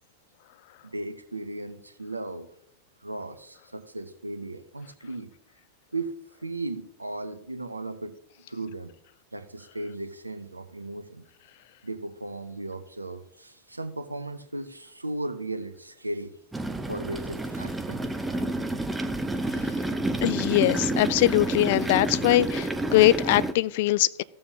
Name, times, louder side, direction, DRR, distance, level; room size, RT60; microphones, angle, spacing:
voice 1, 0.8-2.5 3.0-5.3 5.9-6.1 6.4-8.9 9.3-11.3 11.8-16.3 16.9-18.0, right 2 dB, 85° right, 0.7 m, -36 dB
sound 1, 16.5-23.5, right 2 dB, 10° right, 0.7 m, -29 dB
voice 2, 20.2-24.2, left 16 dB, 50° left, 0.3 m, -22 dB
14.5 x 7.0 x 2.8 m
figure-of-eight pair, 90°, 0 cm